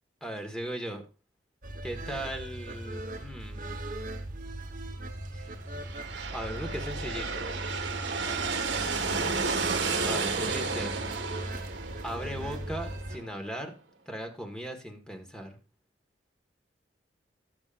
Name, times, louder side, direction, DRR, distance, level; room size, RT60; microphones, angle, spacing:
voice 1, 0.2-1.0 1.8-3.7 5.3-5.5 6.3-7.5 10.0-10.9 12.0-13.7 14.1-15.5, equal, 5° left, 4 dB, 1.7 m, -38 dB
sound 1, 1.6-13.2, right 1 dB, 50° right, 1.3 m, -39 dB
sound 2, 5.7-13.4, right 4 dB, 90° right, 1.7 m, -32 dB
19.5 x 7.3 x 2.6 m, 0.32 s
head